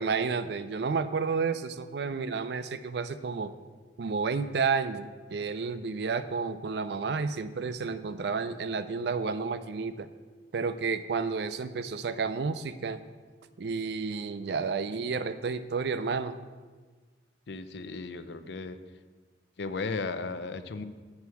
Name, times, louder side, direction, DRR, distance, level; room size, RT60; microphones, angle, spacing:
voice 1, 0.0-3.5 4.0-10.1 10.5-13.0 13.6-16.4, right 5 dB, 65° right, 12 dB, 0.4 m, -31 dB
voice 2, 17.5-18.8 19.6-20.8, left 4 dB, 70° left, 11 dB, 0.5 m, -35 dB
7.9 x 4.6 x 6.9 m, 1.4 s
head